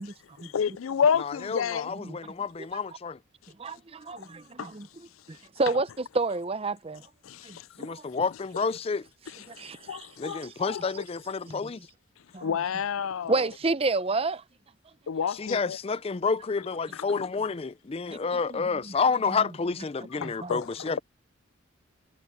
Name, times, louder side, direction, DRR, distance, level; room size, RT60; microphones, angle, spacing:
voice 1, 0.5-1.9 4.6-4.8 7.2-7.9 9.3-11.0 12.4-13.5 15.1-15.8 16.9-17.2 20.2-21.0, left 7 dB, 90° left, 0.4 m, -30 dB
voice 2, 1.2-3.2 7.8-9.1 10.2-11.8 15.4-21.0, left 5 dB, 30° left, 0.4 m, -29 dB
voice 3, 3.6-4.9 5.3-7.0 7.4-7.6 7.9-8.0 9.5-10.0 10.2-10.5 11.5-11.7 12.3-12.5 13.3-14.4 18.1-18.2 18.5-18.9 19.2-19.5 20.2-20.6, right 3 dB, 30° right, 0.6 m, -30 dB
head